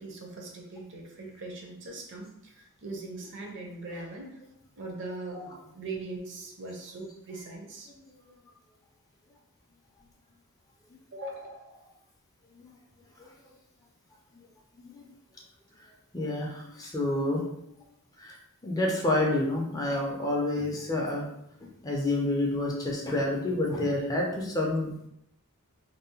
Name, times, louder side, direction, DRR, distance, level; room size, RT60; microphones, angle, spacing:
voice 1, 0.0-4.4 4.8-5.4 5.7-7.9 11.1-11.8, right 2 dB, 55° right, 1 dB, 0.5 m, -40 dB
voice 2, 14.8-15.1 15.7-15.9 16.1-17.4 18.2-18.4 18.6-21.3 21.6-25.1, left 1 dB, 15° left, -2 dB, 0.4 m, -29 dB
2.7 x 2.0 x 2.7 m, 0.78 s
head